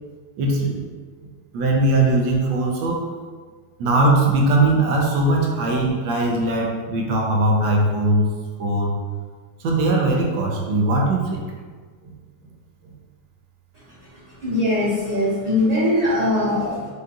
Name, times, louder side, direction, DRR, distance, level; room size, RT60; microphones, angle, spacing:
voice 1, 0.4-0.8 1.5-3.0 3.8-8.3 8.6-8.9 9.6-11.4, right 2 dB, 75° right, 0 dB, 1.3 m, -20 dB
voice 2, 14.4-16.9, left 1 dB, 25° right, -10 dB, 0.9 m, -21 dB
5.1 x 2.3 x 2.8 m, 1.5 s
omnidirectional pair, 2.1 m